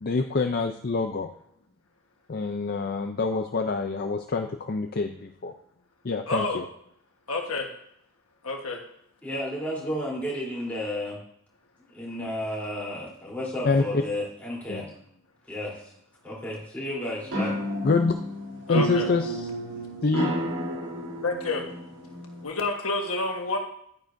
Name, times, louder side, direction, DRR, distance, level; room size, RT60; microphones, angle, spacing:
voice 1, 0.0-1.3 2.3-5.5 6.0-6.6 13.6-14.0 14.7-14.9 17.8-18.1 18.7-19.4 20.0-20.3, left 3 dB, 45° left, 6 dB, 0.5 m, -26 dB
voice 2, 6.3-6.6 7.3-7.7 8.4-8.8 18.7-19.1 21.2-21.7 22.4-23.6, left 3 dB, 75° left, 2 dB, 1.3 m, -28 dB
voice 3, 9.2-11.2 11.8-14.9 15.5-15.7 16.2-17.6, left 1 dB, 5° left, -5 dB, 3.4 m, -32 dB
sound 1, 17.2-22.4, right 1 dB, 80° right, 3.3 m, -31 dB
11.5 x 9.5 x 2.6 m, 0.70 s
head